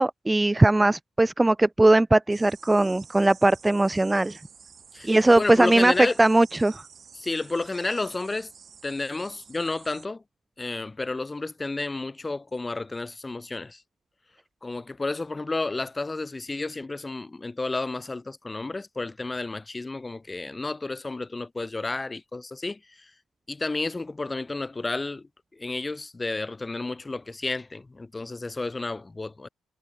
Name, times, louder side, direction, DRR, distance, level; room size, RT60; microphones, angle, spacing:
voice 1, 0.0-4.4 5.0-5.9 6.2-6.8, right 2 dB, 15° right, 0.3 m, -20 dB
sound 1, 2.3-10.1, right 6 dB, 45° right, 2.6 m, -50 dB
voice 2, 4.9-6.2 7.1-8.5 8.8-10.2 10.6-13.8 14.6-23.1 23.5-29.5, left 3 dB, 20° left, 0.8 m, -31 dB
cardioid pair, 90°, 0 cm